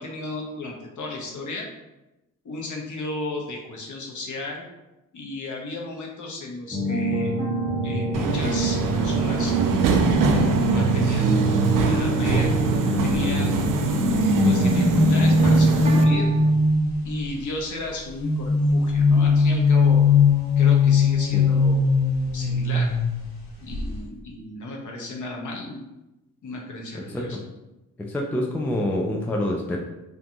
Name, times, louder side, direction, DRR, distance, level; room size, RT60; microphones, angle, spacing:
voice 1, 0.0-1.7 2.4-4.6 5.1-7.3 7.8-9.5 10.3-12.5 13.0-13.7 14.4-16.3 17.0-20.0 20.6-21.8 22.3-22.9 23.6-25.8 26.4-27.4, left 2 dB, 50° left, 0 dB, 0.8 m, -34 dB
sound 1, 6.7-16.5, right 1 dB, 15° right, 0.8 m, -26 dB
Subway metro underground, 8.1-16.0, right 4 dB, 55° right, 0.5 m, -25 dB
sound 2, 9.7-13.3 13.9-17.2 18.2-23.4 23.7-24.0, left 3 dB, 80° left, 0.9 m, -21 dB
voice 2, 26.9-27.4 28.0-29.8, left 1 dB, 5° left, 0 dB, 0.3 m, -27 dB
2.4 x 2.2 x 2.8 m, 0.97 s
hypercardioid pair, 40°, 40 cm